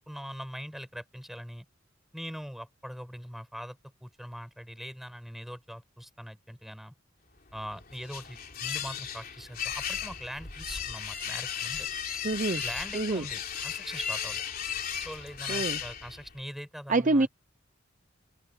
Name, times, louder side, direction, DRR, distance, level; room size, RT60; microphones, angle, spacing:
voice 1, 0.0-1.7 2.1-6.9 7.5-11.9 12.6-14.4 15.0-17.3, equal, ahead, 7.6 m, -42 dB
sound 1, 7.5-16.4, left 8 dB, 50° left, 3.4 m, -36 dB
voice 2, 12.2-12.6 12.9-13.2 15.5-15.8 16.9-17.3, right 2 dB, 40° right, 0.8 m, -26 dB
open air
head